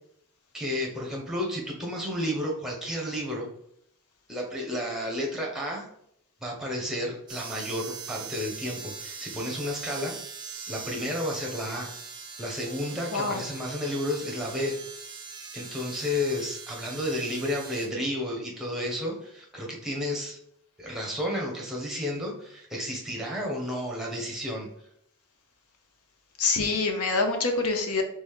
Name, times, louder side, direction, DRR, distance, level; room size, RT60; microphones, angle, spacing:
voice 1, 0.5-3.5 4.3-5.9 6.4-10.1 10.7-11.9 12.4-14.8 15.5-20.4 20.8-24.7, left 1 dB, ahead, -1 dB, 1.0 m, -32 dB
sound 1, 7.3-17.9, right 5 dB, 20° right, 0.6 m, -41 dB
voice 2, 26.4-28.0, left 3 dB, 70° left, 5 dB, 0.8 m, -25 dB
4.1 x 3.5 x 3.5 m, 0.71 s
head